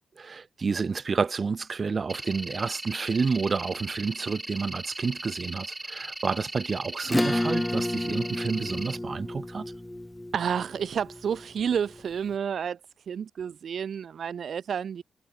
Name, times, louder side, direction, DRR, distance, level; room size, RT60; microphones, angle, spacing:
voice 1, 0.2-9.7, right 5 dB, 35° right, 2.2 m, -30 dB
sound 1, 2.1-9.0, right 1 dB, 10° right, 3.4 m, -38 dB
Acoustic guitar / Strum, 7.1-12.0, left 1 dB, 10° left, 0.6 m, -31 dB
voice 2, 10.3-12.8 13.1-15.0, right 7 dB, 60° right, 1.3 m, -30 dB
wide cardioid pair, 145°, 0 cm